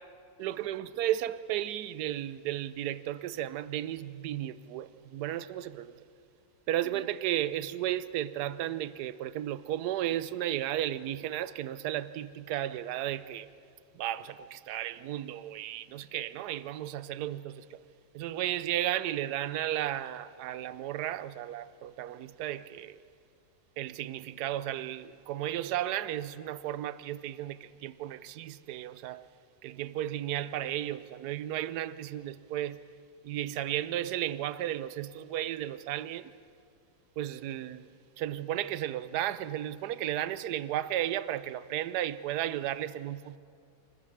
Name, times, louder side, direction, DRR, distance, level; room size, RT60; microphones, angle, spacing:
voice 1, 0.4-5.9 6.7-13.5 13.9-17.8 18.1-23.0 23.8-29.2 29.6-32.8 33.2-36.3 37.2-37.9 38.2-43.4, right 12 dB, 70° right, 1.1 m, -34 dB
27.5 x 14.0 x 7.2 m
omnidirectional pair, 2.0 m